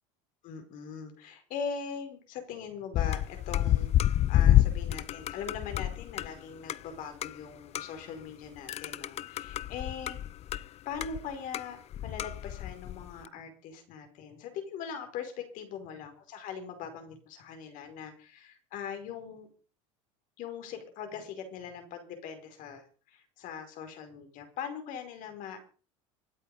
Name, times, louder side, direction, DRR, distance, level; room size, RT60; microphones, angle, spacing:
voice 1, 0.4-10.2 10.8-19.5 20.4-25.6, left 7 dB, 60° left, 6 dB, 5.0 m, -41 dB
sound 1, 2.9-6.3 6.7-6.8 7.2-7.3 7.7-8.0 8.7-10.6 10.9-11.7 11.9-13.3, left 12 dB, 45° left, 0.7 m, -28 dB
25.5 x 8.5 x 5.4 m, 0.40 s
supercardioid pair, 95°, 16 cm